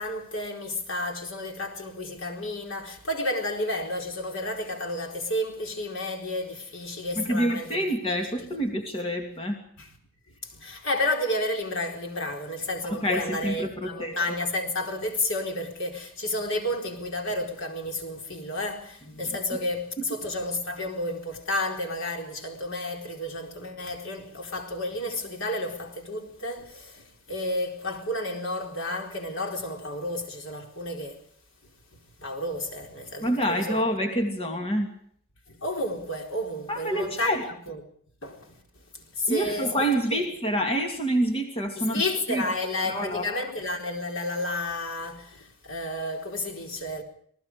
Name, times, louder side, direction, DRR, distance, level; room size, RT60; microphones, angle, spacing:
voice 1, 0.0-8.5 9.8-9.9 10.4-31.2 32.2-33.8 35.5-37.4 37.7-37.8 38.2-38.6 39.1-39.7 41.8-47.0, left 1 dB, 65° left, 4.4 m, -31 dB
voice 2, 7.2-9.6 12.8-14.2 19.2-19.4 33.2-34.9 36.7-37.4 39.3-42.0 42.3-42.4 42.8-43.3, equal, 30° left, 2.7 m, -27 dB
27.5 x 19.0 x 4.9 m
head